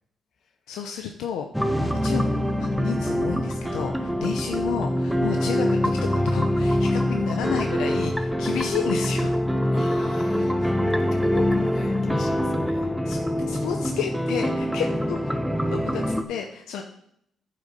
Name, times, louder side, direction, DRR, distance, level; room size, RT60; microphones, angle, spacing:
voice 1, 0.7-1.4 1.8-2.3 2.6-9.3 13.0-15.3 15.7-16.8, left 8 dB, 90° left, 4 dB, 0.7 m, -31 dB
Time Is Running Out, 1.5-16.2, equal, ahead, 0.9 m, -24 dB
voice 2, 9.7-10.8 11.1-12.9, left 5 dB, 65° left, 6 dB, 1.5 m, -40 dB
9.8 x 6.5 x 5.3 m, 0.74 s
cardioid pair, 90°, 0 cm